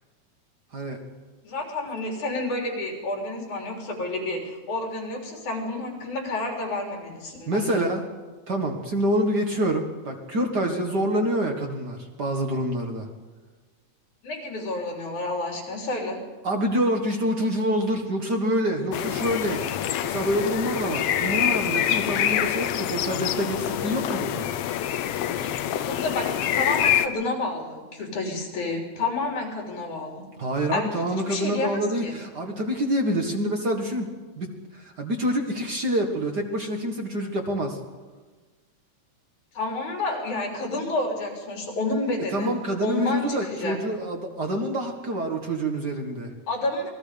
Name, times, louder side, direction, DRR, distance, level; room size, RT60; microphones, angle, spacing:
voice 1, 0.7-1.0 7.5-8.0 8.5-13.1 16.4-19.6 20.0-24.5 30.4-34.1 34.4-37.8 42.3-46.3, equal, 40° right, 3 dB, 1.8 m, -26 dB
voice 2, 1.4-7.9 14.2-16.2 22.3-22.5 25.8-30.2 30.7-31.7 32.0-32.2 39.5-42.5 42.8-43.8 46.5-46.9, left 2 dB, 90° left, 1 dB, 5.1 m, -30 dB
sound 1, 18.9-27.1, left 10 dB, 70° left, 1.6 m, -26 dB
27.0 x 20.0 x 5.1 m, 1.3 s
omnidirectional pair, 3.3 m